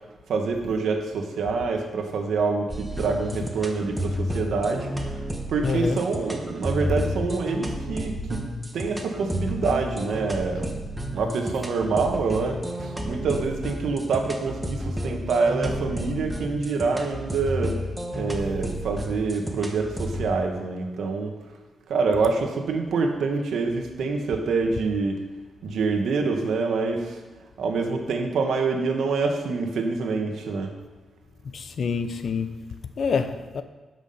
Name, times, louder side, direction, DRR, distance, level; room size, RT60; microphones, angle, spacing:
voice 1, 0.3-5.1 5.5-8.4 8.7-10.8 11.1-17.8 18.1-21.4 21.9-25.2 25.6-27.2 27.6-30.7, right 4 dB, 90° right, 1.5 m, -26 dB
sound 1, 2.7-20.3, equal, 10° right, 1.3 m, -31 dB
voice 2, 5.6-6.0 31.5-33.6, left 5 dB, 60° left, 0.7 m, -27 dB
13.0 x 6.2 x 5.7 m
wide cardioid pair, 125°, 0 cm